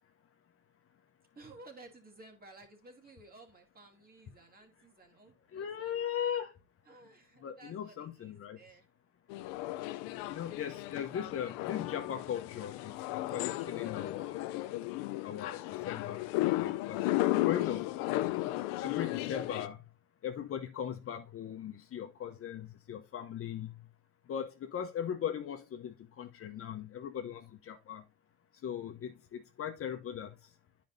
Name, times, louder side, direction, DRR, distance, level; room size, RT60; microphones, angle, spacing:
voice 1, 1.4-6.0 6.8-8.8 10.3-10.6, right 2 dB, 25° right, 2.4 m, -55 dB
voice 2, 5.5-6.5 7.4-8.6 10.3-14.5 15.2-15.6 15.8-17.0 17.4-17.9 18.8-19.8 20.2-23.9 24.3-28.0 28.6-30.4, left 9 dB, 40° left, 1.0 m, -39 dB
sound 1, 9.3-19.7, left 17 dB, 75° left, 0.6 m, -34 dB
10.5 x 5.3 x 2.7 m
supercardioid pair, 90°, 34 cm